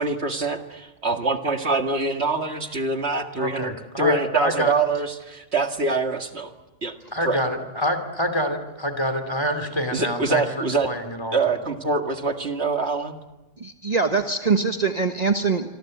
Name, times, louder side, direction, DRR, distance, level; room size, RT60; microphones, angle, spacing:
voice 1, 0.0-6.5 6.8-6.9 7.2-7.4 9.9-10.9 11.3-13.2, right 3 dB, 65° right, 5 dB, 2.2 m, -24 dB
voice 2, 3.3-4.7 7.1-11.4, equal, 20° left, 8 dB, 3.1 m, -26 dB
voice 3, 13.6-15.7, right 4 dB, 35° right, 5 dB, 1.4 m, -23 dB
26.0 x 25.5 x 7.9 m, 1.0 s
omnidirectional pair, 1.2 m